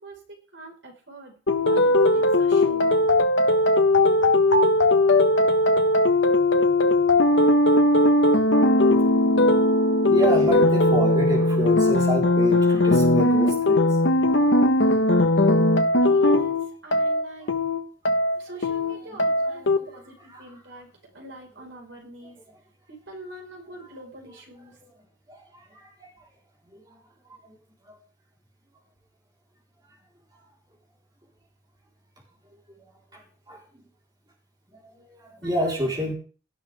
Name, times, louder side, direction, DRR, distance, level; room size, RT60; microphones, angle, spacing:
voice 1, 0.0-2.9 16.0-16.6 16.8-17.5 18.4-20.9 21.1-22.4 22.9-24.8 35.4-35.7 36.0-36.1, right 1 dB, 75° right, 1 dB, 5.0 m, -44 dB
sound 1, 1.5-19.8, left 1 dB, 75° left, 1.3 m, -19 dB
voice 2, 10.1-14.5 15.9-16.0 17.4-17.5 19.0-19.2 19.4-20.0 20.3-20.5 24.8-24.9 25.3-26.3 26.7-27.0 27.5-27.6 27.9-28.0 33.1-33.6 34.8-36.1, equal, 20° right, -2 dB, 4.1 m, -30 dB
17.5 x 13.0 x 3.6 m, 0.39 s
head